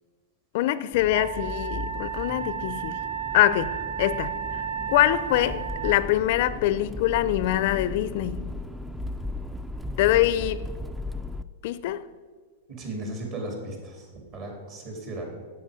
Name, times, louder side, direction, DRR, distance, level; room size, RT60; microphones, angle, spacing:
voice 1, 0.5-3.0 3.3-3.7 4.0-4.3 4.9-8.4 10.0-10.6 11.6-12.0, left 14 dB, 60° left, 0.4 m, -24 dB
Accelerating revving vroom, 0.9-11.4, left 1 dB, 5° right, 0.4 m, -36 dB
Wind instrument woodwind instrument, 1.1-6.0, right 8 dB, 65° right, 0.9 m, -33 dB
voice 2, 12.7-15.2, right 1 dB, 45° right, 3.2 m, -36 dB
9.5 x 7.7 x 5.2 m
hypercardioid pair, 125°, 0 cm